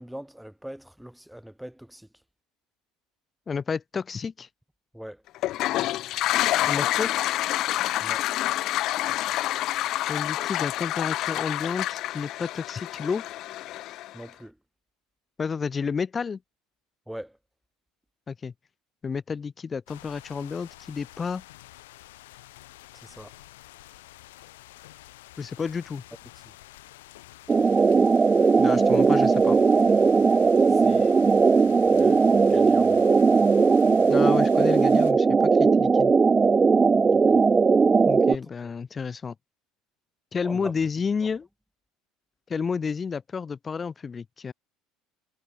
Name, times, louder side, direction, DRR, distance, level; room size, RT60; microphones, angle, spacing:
voice 1, 0.0-2.1 4.9-5.2 8.0-8.3 14.1-14.5 17.1-17.4 22.9-23.3 30.7-31.2 31.9-33.0 37.1-37.4 38.3-38.7 40.4-40.7, equal, 5° right, 4.8 m, -41 dB
voice 2, 3.5-4.5 6.7-7.2 10.1-13.2 15.4-16.4 18.3-18.5 19.0-21.4 25.4-26.0 28.6-29.6 34.1-36.1 38.1-39.3 40.3-41.5 42.5-44.5, left 5 dB, 30° left, 0.9 m, -30 dB
Toilet flush, 5.3-14.2, left 15 dB, 60° left, 0.8 m, -28 dB
sound 1, 19.9-35.1, left 17 dB, 80° left, 2.7 m, -49 dB
sound 2, 27.5-38.3, right 5 dB, 25° right, 0.6 m, -19 dB
hypercardioid pair, 75°, 0 cm